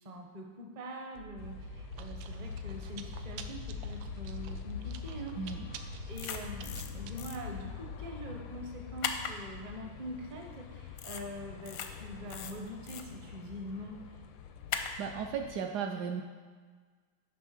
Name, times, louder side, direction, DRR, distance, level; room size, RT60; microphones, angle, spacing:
voice 1, 0.0-5.4 6.1-14.0, equal, 35° right, 2 dB, 0.6 m, -44 dB
Chewing mastication, 1.1-8.4, right 10 dB, 90° right, 1.3 m, -48 dB
sound 1, 1.4-15.6, left 9 dB, 85° left, 1.4 m, -44 dB
voice 2, 5.4-5.8 15.0-16.2, right 6 dB, 70° right, 3 dB, 1.0 m, -35 dB
sound 2, 6.1-6.9 7.2-7.4 9.0-9.3 11.0-11.2 11.6-11.9 12.3-13.0 14.7-14.9, left 8 dB, 70° left, 0.8 m, -37 dB
10.0 x 3.4 x 5.9 m, 1.5 s
omnidirectional pair, 2.0 m